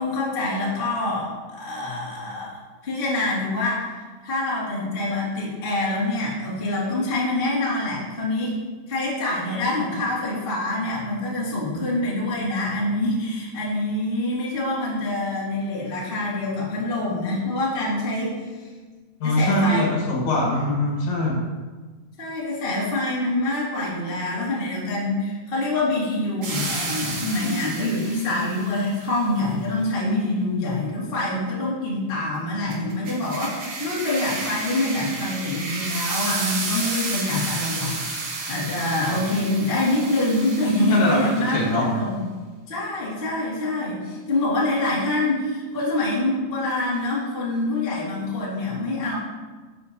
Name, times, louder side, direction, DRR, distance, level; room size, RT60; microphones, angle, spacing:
voice 1, 0.0-2.6 2.8-3.9 4.2-8.5 8.9-18.4 19.2-19.9 22.2-42.2 42.7-49.1, left 2 dB, 25° left, -6 dB, 1.3 m, -25 dB
voice 2, 19.2-21.4 40.9-41.8, left 1 dB, 65° left, -3 dB, 2.8 m, -22 dB
sound 1, 26.4-28.8 32.7-41.6, right 3 dB, 60° right, 2.1 m, -31 dB
11.0 x 6.8 x 2.8 m, 1.4 s
omnidirectional pair, 3.7 m